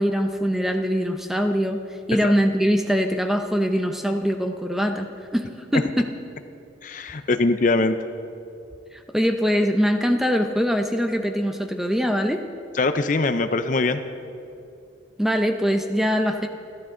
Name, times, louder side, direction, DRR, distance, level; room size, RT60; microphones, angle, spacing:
voice 1, 0.0-1.8 2.1-6.1 8.9-12.4 15.2-16.5, equal, ahead, 5 dB, 0.7 m, -22 dB
voice 2, 6.8-8.0 12.7-14.0, left 3 dB, 40° left, 9 dB, 0.5 m, -22 dB
28.5 x 12.5 x 3.8 m, 2.6 s
head